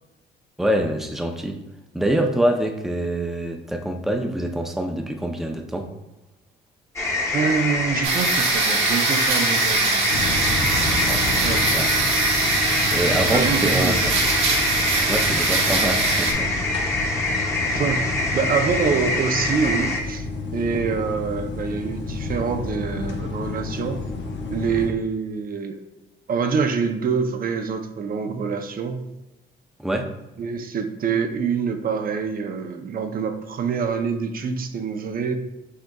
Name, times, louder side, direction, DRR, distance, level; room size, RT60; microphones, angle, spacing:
voice 1, 0.6-1.6 1.9-5.9 11.1-11.9 12.9-13.9 15.1-16.6 29.8-30.1, right 1 dB, ahead, 3 dB, 0.5 m, -25 dB
sound 1, 7.0-20.0, left 2 dB, 15° left, 1.0 m, -25 dB
voice 2, 7.3-10.1 11.4-11.7 13.3-14.1 17.6-20.3 20.5-24.0 24.5-25.8 26.3-29.0 30.4-35.3, right 6 dB, 45° right, 6 dB, 0.6 m, -25 dB
sound 2, 8.0-16.3, right 4 dB, 85° right, 0.9 m, -23 dB
sound 3, 10.1-24.9, left 3 dB, 65° left, 0.8 m, -30 dB
6.4 x 3.4 x 2.3 m, 0.97 s
cardioid pair, 90°, 20 cm